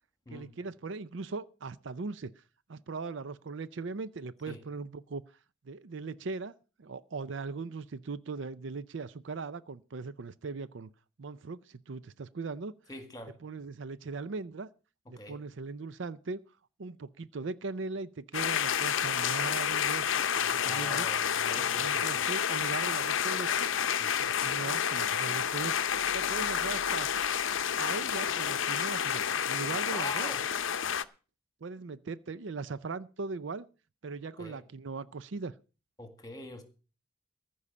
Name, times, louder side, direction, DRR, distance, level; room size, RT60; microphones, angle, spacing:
voice 1, 0.3-2.4 2.7-5.2 5.6-6.5 6.8-10.9 11.2-12.8 13.4-14.7 15.1-16.4 16.8-21.1 21.6-23.7 24.2-25.8 26.1-27.1 27.8-30.3 31.6-33.7 34.0-35.5, right 4 dB, 60° right, 0.5 m, -39 dB
voice 2, 12.9-13.4 15.1-15.4 20.6-22.3 24.0-24.1 29.9-30.4 34.4-34.6 36.0-36.6, left 2 dB, 20° left, 1.9 m, -43 dB
sound 1, 18.3-31.0, left 8 dB, 65° left, 0.7 m, -30 dB
15.0 x 5.5 x 8.4 m
head